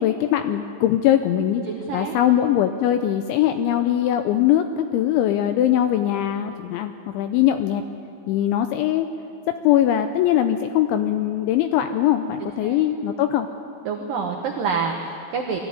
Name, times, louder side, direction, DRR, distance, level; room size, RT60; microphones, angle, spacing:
voice 1, 0.0-1.6 1.9-7.8 8.3-9.1 9.6-13.5, left 11 dB, 85° left, 8 dB, 2.7 m, -21 dB
voice 2, 1.7-2.1 12.4-12.8 13.8-15.6, right 5 dB, 75° right, 2 dB, 2.0 m, -27 dB
21.0 x 14.5 x 9.7 m, 2.8 s
omnidirectional pair, 5.9 m